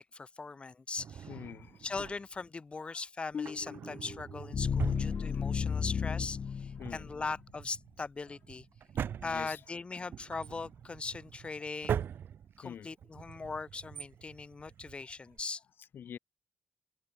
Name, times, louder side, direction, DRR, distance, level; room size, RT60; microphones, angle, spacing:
voice 1, 0.0-1.3 1.8-8.6 9.2-12.0 12.6-15.6, left 4 dB, 30° left, 1.2 m, -40 dB
Drawer open or close, 1.0-2.5 3.3-5.8 6.1-6.2 6.7-15.4, right 8 dB, 85° right, 1.0 m, -42 dB
voice 2, 1.3-1.8 2.8-3.0 5.1-5.4 6.8-7.1 9.0-9.6 12.6-12.9 14.7-14.8 15.9-16.2, left 8 dB, 85° left, 1.2 m, -46 dB
sound 1, 3.3-7.4, left 6 dB, 55° left, 0.6 m, -34 dB
wide cardioid pair, 125°, 4 cm